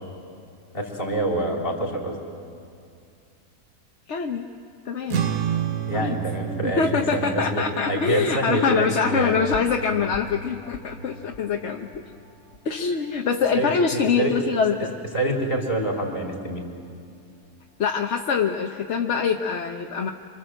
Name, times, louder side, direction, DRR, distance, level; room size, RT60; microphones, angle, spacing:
voice 1, 0.7-2.2 5.9-7.6 7.9-9.4 13.5-14.4 15.1-16.6, right 1 dB, 35° left, -1 dB, 4.1 m, -26 dB
voice 2, 4.1-4.5 4.8-5.2 5.9-6.2 6.6-12.0 12.6-14.9 17.8-20.1, left 6 dB, 50° left, 3 dB, 1.1 m, -24 dB
sound 1, 5.1-11.7, right 10 dB, 65° right, 1.3 m, -31 dB
sound 2, 9.0-13.9 14.4-14.5, left 1 dB, 80° left, 1.8 m, -39 dB
27.0 x 26.0 x 7.8 m, 2.4 s
omnidirectional pair, 1.7 m